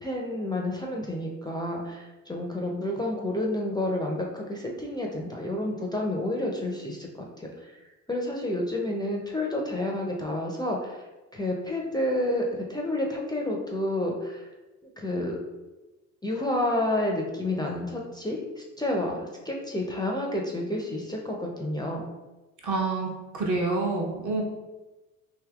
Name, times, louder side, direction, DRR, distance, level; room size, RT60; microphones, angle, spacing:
voice 1, 0.0-7.8 8.1-11.0 11.3-14.5 15.0-15.4 16.2-22.1, left 1 dB, 10° left, -1 dB, 0.4 m, -30 dB
voice 2, 22.6-23.1 23.3-24.4, right 3 dB, 50° right, -1 dB, 0.9 m, -27 dB
3.4 x 2.7 x 2.3 m, 1.1 s
hypercardioid pair, 65°, 38 cm